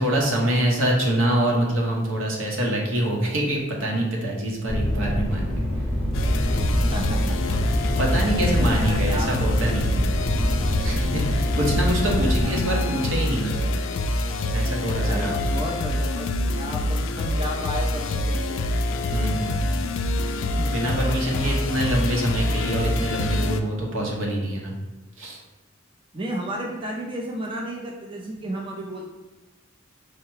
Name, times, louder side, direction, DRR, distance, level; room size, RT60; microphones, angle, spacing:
voice 1, 0.0-5.6 7.4-7.6 8.0-10.0 10.8-13.7 14.5-15.4 19.1-19.7 20.5-24.7 25.2-25.4, right 1 dB, 75° right, -1 dB, 1.0 m, -25 dB
sound 1, 4.7-12.4, left 1 dB, ahead, 0.9 m, -25 dB
sound 2, 6.1-23.6, left 1 dB, 70° left, 0.4 m, -26 dB
voice 2, 6.7-7.4 7.9-9.3 12.2-12.6 15.0-18.6 20.9-21.8 26.1-29.1, equal, 25° right, -1 dB, 0.5 m, -33 dB
4.7 x 2.2 x 4.6 m, 1.1 s
head